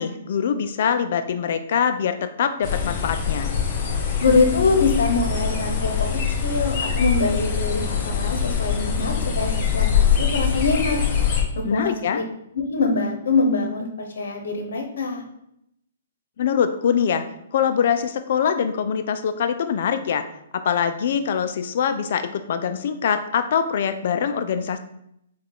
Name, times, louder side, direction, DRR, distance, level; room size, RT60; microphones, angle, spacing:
voice 1, 0.0-3.5 11.6-12.2 16.4-17.2 17.5-20.2 20.5-24.8, left 7 dB, 55° left, 9 dB, 0.4 m, -23 dB
sound 1, 2.6-11.4, left 7 dB, 40° left, 0.8 m, -23 dB
voice 2, 4.2-6.1 6.4-11.0 11.6-12.2 12.5-15.2, left 3 dB, 80° left, 3 dB, 0.9 m, -23 dB
4.7 x 2.4 x 3.7 m, 0.76 s
hypercardioid pair, 155°, 0 cm